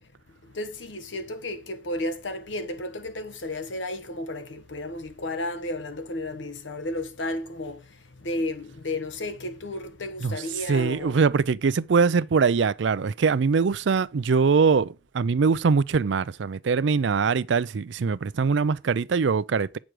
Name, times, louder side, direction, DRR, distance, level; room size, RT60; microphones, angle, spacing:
voice 1, 0.5-7.8 8.2-11.2, left 1 dB, 80° left, 1.3 m, -33 dB
voice 2, 10.7-19.8, right 5 dB, 75° right, 0.4 m, -22 dB
9.0 x 6.3 x 4.9 m
head